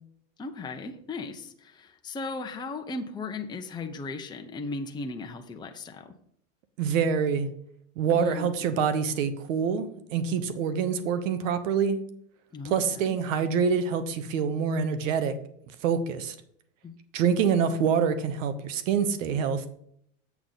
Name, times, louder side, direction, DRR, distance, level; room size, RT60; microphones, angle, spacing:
voice 1, 0.4-6.1 8.1-8.5 12.5-13.2 16.8-16.9, left 3 dB, 10° left, 4 dB, 0.7 m, -37 dB
voice 2, 6.8-7.5 8.0-12.0 12.6-15.3 15.8-16.3 17.1-19.7, right 6 dB, 80° right, 11 dB, 1.1 m, -26 dB
7.7 x 7.1 x 3.9 m, 0.68 s
supercardioid pair, 125°, 38 cm